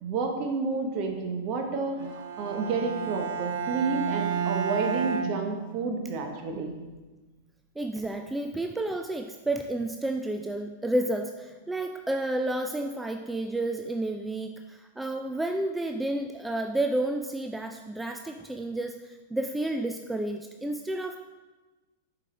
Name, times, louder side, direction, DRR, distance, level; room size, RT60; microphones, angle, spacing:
voice 1, 0.0-6.7, right 4 dB, 45° right, 3 dB, 1.0 m, -30 dB
Bowed string instrument, 2.0-6.1, right 7 dB, 60° right, 0.6 m, -32 dB
voice 2, 7.8-19.0 19.3-21.2, right 1 dB, 5° right, 5 dB, 0.3 m, -31 dB
7.3 x 4.9 x 3.3 m, 1.2 s
figure-of-eight pair, 95°, 0 cm